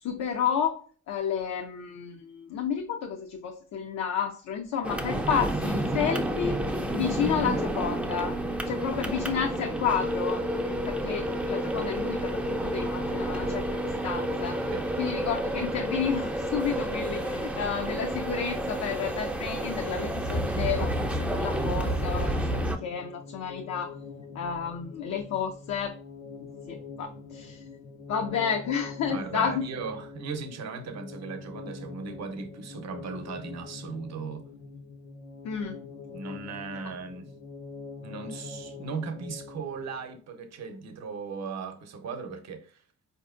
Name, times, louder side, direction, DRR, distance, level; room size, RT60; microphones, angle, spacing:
voice 1, 0.0-6.5 6.9-8.4 8.7-14.6 15.0-24.0 24.3-25.9 26.4-27.6 28.1-29.7 35.4-35.8, left 7 dB, 65° left, 0.5 m, -31 dB
sound 1, 4.8-22.8, right 1 dB, 5° right, 0.4 m, -30 dB
sound 2, 21.4-40.2, left 4 dB, 85° left, 0.9 m, -44 dB
voice 2, 29.1-34.5 36.1-37.3 38.0-42.8, right 5 dB, 60° right, 0.7 m, -37 dB
4.1 x 2.7 x 2.4 m
cardioid pair, 90°, 30 cm